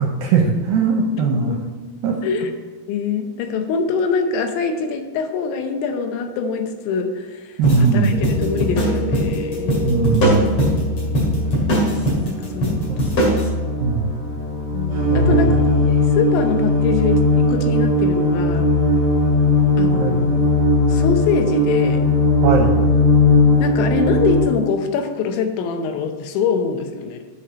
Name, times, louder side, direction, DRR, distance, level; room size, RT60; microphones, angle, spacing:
voice 1, 0.0-1.6 2.0-2.2 7.6-8.2 9.8-10.6 13.8-14.1 15.1-15.6 19.9-20.2 22.4-22.8, right 4 dB, 80° right, 1 dB, 2.1 m, -19 dB
voice 2, 2.9-10.0 12.2-12.8 14.7-18.7 19.8-20.3 20.9-22.0 23.6-27.2, left 5 dB, 90° left, 6 dB, 3.2 m, -24 dB
sound 1, 7.6-13.5, equal, 40° left, 2.5 m, -21 dB
sound 2, 8.1-24.4, left 2 dB, 40° right, 1.5 m, -19 dB
8.5 x 4.9 x 6.1 m, 1.4 s
omnidirectional pair, 5.1 m